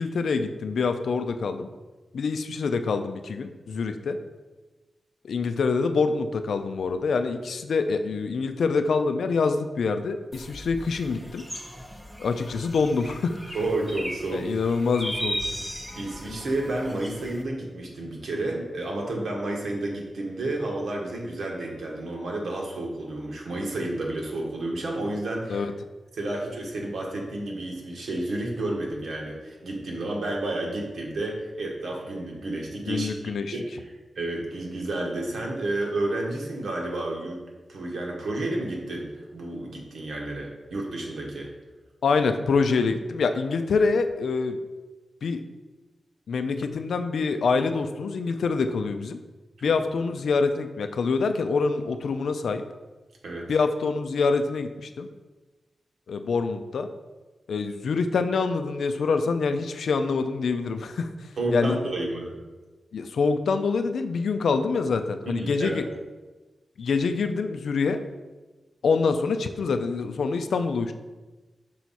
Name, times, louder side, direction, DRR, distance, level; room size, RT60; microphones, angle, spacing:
voice 1, 0.0-1.7 2.1-4.2 5.2-11.5 12.2-13.3 14.3-15.4 25.5-25.7 32.9-33.5 42.0-44.6 45.2-45.4 46.3-49.2 49.6-52.6 53.5-55.1 56.1-56.9 57.5-61.1 61.5-61.8 62.9-65.8 66.8-68.0 68.8-70.9, left 4 dB, 80° left, 8 dB, 0.4 m, -25 dB
sound 1, 10.3-17.4, equal, ahead, 0.6 m, -37 dB
voice 2, 13.5-14.5 15.9-25.7 26.1-33.1 33.5-37.4 37.7-41.5 53.2-53.5 61.4-62.4 65.3-65.8, right 2 dB, 80° right, -1 dB, 1.3 m, -31 dB
5.6 x 4.6 x 4.1 m, 1.2 s
wide cardioid pair, 135°, 0 cm